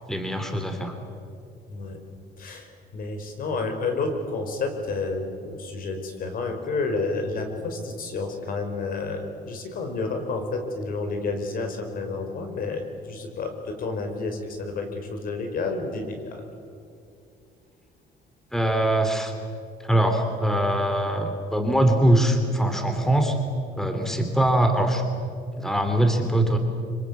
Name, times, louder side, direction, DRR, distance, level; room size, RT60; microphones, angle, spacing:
voice 1, 0.1-1.0 18.5-19.3 19.8-23.4 23.8-25.0 25.5-26.6, right 1 dB, ahead, 5 dB, 3.0 m, -22 dB
voice 2, 2.4-16.4 23.9-24.2, left 3 dB, 55° left, 5 dB, 5.1 m, -30 dB
25.5 x 25.5 x 8.3 m, 2.4 s
cardioid pair, 110°, 17 cm